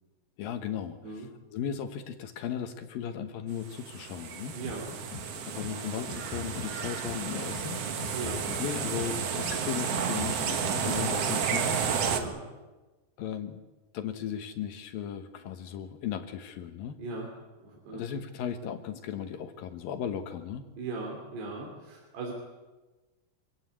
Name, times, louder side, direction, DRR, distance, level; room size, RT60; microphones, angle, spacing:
voice 1, 0.4-4.6 5.5-7.9 8.6-11.8 13.2-13.6 13.9-17.0 17.9-20.7, left 8 dB, 65° left, 9 dB, 2.6 m, -36 dB
sound 1, 3.6-12.2, right 7 dB, 55° right, 1.8 m, -32 dB
voice 2, 4.5-4.9 8.1-8.5 12.1-12.4 17.0-17.3 17.6-18.0 20.8-22.3, right 3 dB, 75° right, -1 dB, 5.3 m, -38 dB
sound 2, 4.6-12.3, left 6 dB, 90° left, 5.8 m, -42 dB
25.5 x 17.0 x 8.5 m, 1.2 s
omnidirectional pair, 4.9 m